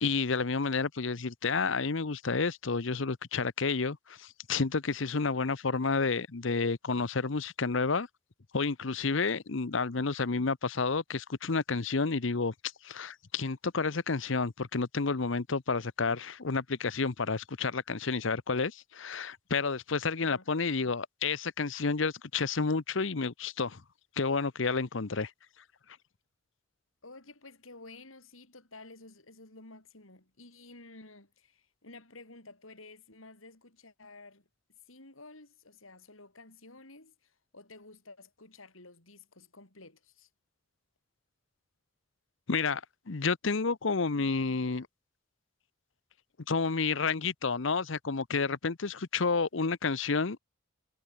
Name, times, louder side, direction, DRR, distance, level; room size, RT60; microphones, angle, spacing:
voice 1, 0.0-8.1 8.5-12.5 12.8-23.8 24.2-25.3 42.5-42.8 43.1-44.9 46.5-50.4, left 4 dB, 65° left, 0.9 m, -30 dB
voice 2, 27.0-34.5 34.9-40.3, left 2 dB, 85° left, 6.5 m, -52 dB
head